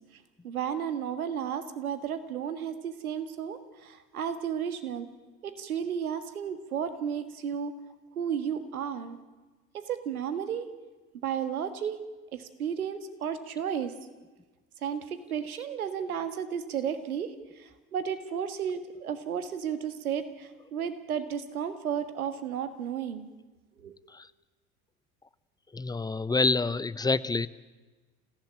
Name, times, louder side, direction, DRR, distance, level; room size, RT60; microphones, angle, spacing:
voice 1, 0.1-5.1 5.4-7.7 8.1-9.2 9.7-10.7 11.2-12.0 12.3-13.9 14.8-23.3 23.8-24.0, right 8 dB, 85° right, 10 dB, 1.8 m, -33 dB
voice 2, 25.7-27.5, left 3 dB, 10° left, 17 dB, 0.8 m, -27 dB
27.5 x 16.0 x 8.8 m, 1.3 s
hypercardioid pair, 65°, 42 cm